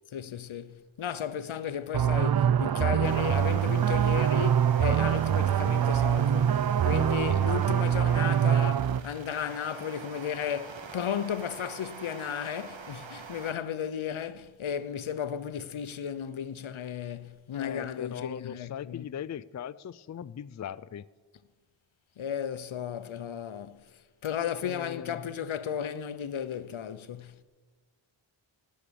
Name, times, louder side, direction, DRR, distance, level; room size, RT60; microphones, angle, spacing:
voice 1, 0.1-19.0 22.2-23.8 24.2-27.4, left 8 dB, 80° left, 0.7 m, -34 dB
sound 1, 1.9-9.0, right 9 dB, 55° right, 0.5 m, -24 dB
sound 2, 3.0-13.5, right 6 dB, 70° right, 1.2 m, -44 dB
voice 2, 17.5-21.1 24.6-25.3, left 8 dB, 40° left, 0.4 m, -39 dB
18.0 x 7.6 x 6.9 m
wide cardioid pair, 70°, 47 cm